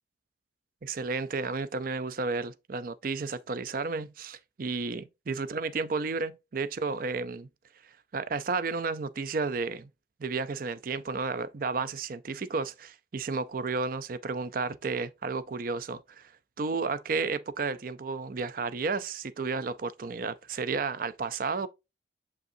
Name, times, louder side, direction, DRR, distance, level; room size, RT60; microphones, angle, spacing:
voice 1, 0.8-7.5 8.1-9.9 10.2-16.3 16.6-21.7, right 4 dB, 50° right, 0.4 m, -32 dB
7.0 x 5.3 x 2.6 m
head